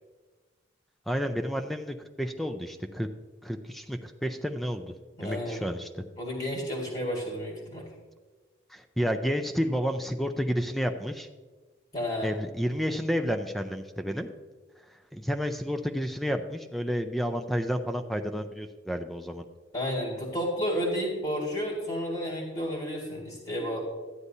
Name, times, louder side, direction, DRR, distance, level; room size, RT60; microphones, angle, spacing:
voice 1, 1.1-3.1 3.4-5.0 5.2-6.0 8.7-11.3 12.2-14.3 15.1-19.4, equal, ahead, 7 dB, 0.4 m, -30 dB
voice 2, 5.2-5.6 6.2-7.9 11.9-12.3 19.7-23.8, equal, 40° left, -2 dB, 1.8 m, -31 dB
13.0 x 9.6 x 2.7 m, 1.3 s
head